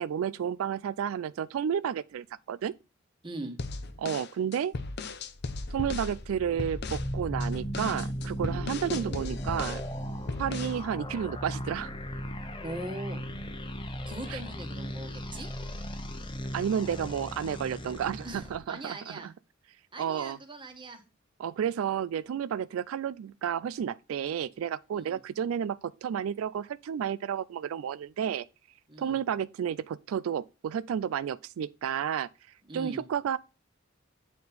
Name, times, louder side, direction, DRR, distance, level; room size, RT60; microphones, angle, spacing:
voice 1, 0.0-2.7 4.0-4.7 5.7-9.8 10.4-12.0 14.3-14.4 16.5-19.3 20.0-20.4 21.4-28.5 29.0-32.3 32.7-33.4, right 8 dB, 90° right, 0.3 m, -31 dB
voice 2, 3.2-3.6 12.6-13.2 14.1-15.5 18.2-19.3 19.9-21.0 24.9-25.2 28.9-29.2 32.7-33.0, right 2 dB, 25° right, 1.4 m, -40 dB
sound 1, 3.6-6.2 6.6-7.1 7.4-9.9 10.3-10.8, left 3 dB, 55° left, 0.7 m, -37 dB
sound 2, 5.3-18.6, equal, 25° left, 0.9 m, -37 dB
8.3 x 4.3 x 4.1 m
head